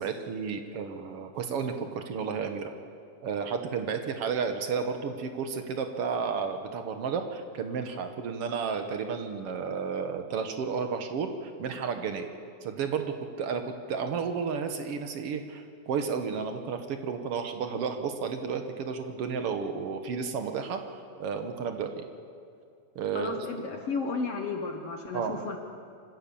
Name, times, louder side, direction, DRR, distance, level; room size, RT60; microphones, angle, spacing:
voice 1, 0.0-2.7 3.2-12.3 12.6-20.8 21.2-22.1 22.9-23.4 25.1-25.4, right 6 dB, 60° right, 6 dB, 1.6 m, -32 dB
voice 2, 23.1-25.6, left 4 dB, 55° left, 3 dB, 1.8 m, -33 dB
26.0 x 15.5 x 7.0 m, 2.4 s
omnidirectional pair, 4.1 m